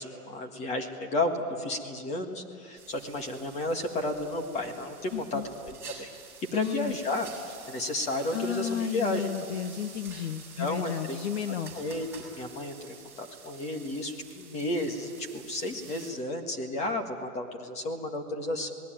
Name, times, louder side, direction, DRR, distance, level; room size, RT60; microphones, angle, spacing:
voice 1, 0.0-6.1 6.5-9.3 10.6-11.2 11.7-18.7, left 1 dB, 15° left, 4 dB, 1.7 m, -32 dB
sound 1, 2.8-16.1, right 5 dB, 5° right, 5.7 m, -48 dB
voice 2, 5.1-5.5 6.5-7.0 8.3-11.7, left 9 dB, 45° left, 11 dB, 1.0 m, -33 dB
27.0 x 19.5 x 9.1 m, 2.3 s
hypercardioid pair, 160°, 47 cm